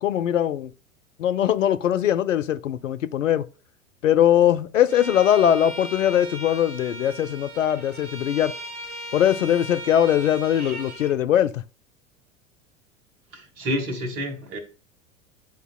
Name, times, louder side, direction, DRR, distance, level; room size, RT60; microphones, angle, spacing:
voice 1, 0.0-0.7 1.2-3.4 4.0-8.5 9.1-11.6, left 10 dB, 70° left, 0.6 m, -21 dB
Bowed string instrument, 4.9-11.2, equal, 60° right, 1.3 m, -37 dB
voice 2, 13.3-14.6, equal, 45° right, 1.7 m, -29 dB
11.5 x 4.0 x 2.2 m
figure-of-eight pair, 85°, 39 cm